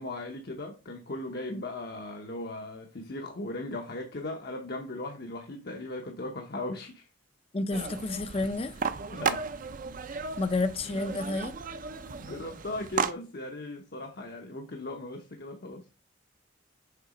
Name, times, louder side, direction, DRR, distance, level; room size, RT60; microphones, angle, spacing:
voice 1, 0.0-7.1 9.1-9.4 12.2-15.9, left 2 dB, 50° left, 0.8 m, -38 dB
voice 2, 7.5-8.8 10.4-11.5, left 3 dB, 30° left, 0.5 m, -30 dB
sound 1, 7.7-13.1, right 5 dB, 40° right, 0.5 m, -34 dB
6.7 x 3.9 x 4.9 m
head